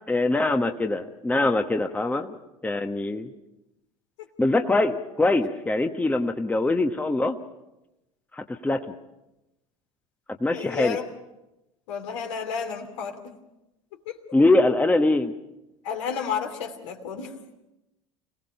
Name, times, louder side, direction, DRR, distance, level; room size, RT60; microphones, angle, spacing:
voice 1, 0.0-2.4 2.6-3.3 4.4-7.4 8.3-8.9 10.4-11.0 14.3-15.3, left 2 dB, 10° left, 6 dB, 1.1 m, -23 dB
voice 2, 10.5-11.1 11.9-13.3 14.0-14.2 15.8-17.4, left 7 dB, 70° left, 4 dB, 2.8 m, -32 dB
26.0 x 17.5 x 5.7 m, 0.94 s
hypercardioid pair, 70°, 17 cm